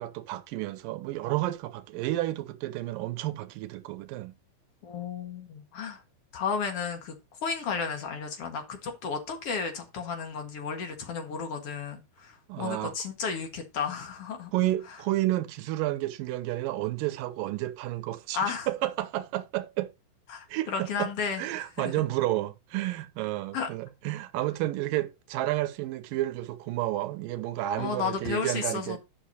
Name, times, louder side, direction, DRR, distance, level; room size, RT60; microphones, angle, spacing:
voice 1, 0.0-4.3 12.5-12.9 14.5-18.4 18.7-19.9 20.5-21.1 21.4-29.0, right 15 dB, 90° right, 2.4 m, -31 dB
voice 2, 4.8-6.0 6.3-7.1 7.4-14.5 14.9-15.0 18.3-18.7 20.3-22.0 23.5-23.7 27.8-29.0, left 6 dB, 50° left, 2.3 m, -33 dB
11.5 x 6.0 x 2.8 m
omnidirectional pair, 3.9 m